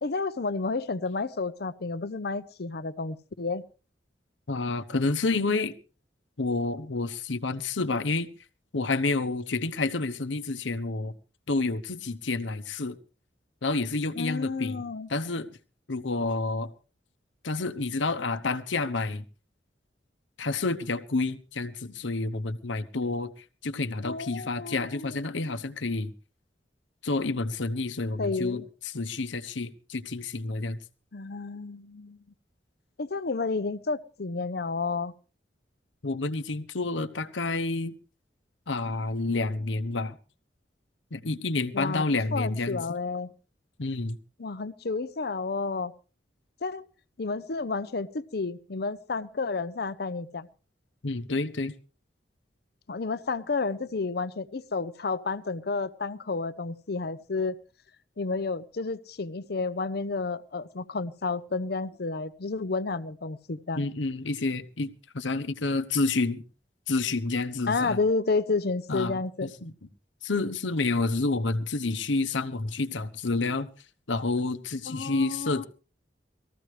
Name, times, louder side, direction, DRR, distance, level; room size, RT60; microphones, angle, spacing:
voice 1, 0.0-3.6 14.1-15.1 24.0-25.6 28.2-28.6 31.1-32.2 33.0-35.1 41.7-42.0 42.3-43.3 44.4-45.9 46.6-46.8 47.2-50.5 52.9-57.6 58.2-63.8 67.7-69.5 74.9-75.6, left 4 dB, 60° left, 0.7 m, -31 dB
voice 2, 4.5-5.7 6.4-8.3 8.7-11.1 11.5-13.0 13.6-14.8 15.1-15.5 15.9-16.7 17.4-19.2 20.4-23.3 23.6-26.1 27.0-30.8 36.0-37.9 38.7-40.2 41.1-43.0 43.8-44.2 51.0-51.7 63.8-66.4 66.9-68.0 68.9-69.7 70.2-73.7 74.1-75.7, left 3 dB, 85° left, 1.0 m, -29 dB
20.0 x 14.5 x 3.2 m
head